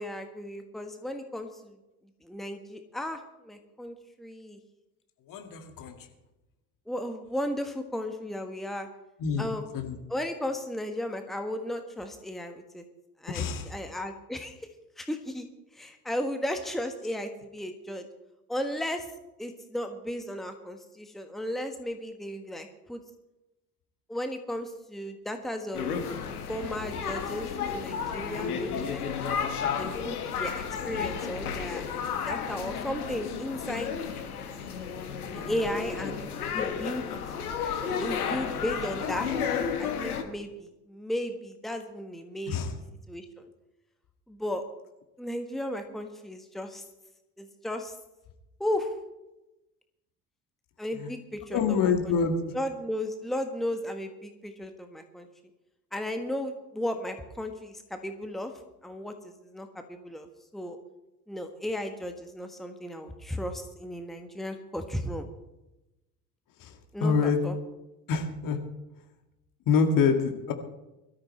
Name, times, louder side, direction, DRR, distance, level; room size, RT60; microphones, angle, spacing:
voice 1, 0.0-1.8 2.2-4.6 6.9-8.9 9.4-9.6 10.1-12.8 13.2-14.5 15.0-15.5 15.7-18.0 18.5-19.1 19.4-23.0 24.1-25.9 26.5-29.0 29.8-31.8 32.3-33.9 35.3-37.0 38.0-39.3 39.8-42.6 43.1-43.4 44.3-44.6 45.2-46.8 47.4-48.0 48.6-48.9 50.8-52.1 52.5-55.3 55.9-58.5 58.8-60.3 60.5-60.8 61.3-65.3 66.9-67.5, left 1 dB, ahead, 6 dB, 1.4 m, -35 dB
voice 2, 5.3-6.0 9.2-10.0 13.3-13.7 42.5-42.8 51.0-51.1 51.5-52.4 66.6-67.4 68.1-68.6 69.7-70.5, left 5 dB, 45° left, 5 dB, 2.1 m, -26 dB
sound 1, 25.7-40.2, left 7 dB, 75° left, 1.4 m, -32 dB
21.5 x 13.5 x 3.3 m, 0.97 s
figure-of-eight pair, 55°, 45 cm